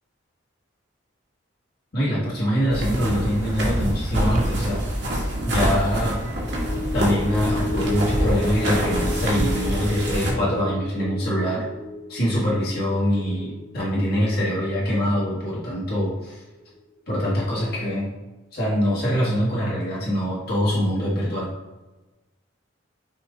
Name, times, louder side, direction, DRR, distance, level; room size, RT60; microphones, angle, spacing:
voice 1, 1.9-4.8 5.4-6.2 6.9-11.6 12.1-16.4 17.1-18.1 18.5-21.5, equal, 50° left, -7 dB, 1.3 m, -24 dB
sound 1, 2.7-10.3, equal, 60° right, 1.2 m, -26 dB
sound 2, 4.1-4.5, right 1 dB, 35° right, 0.4 m, -26 dB
sound 3, 6.4-17.0 17.3-17.5, left 2 dB, 20° left, 0.7 m, -33 dB
5.9 x 2.5 x 3.6 m, 1.1 s
head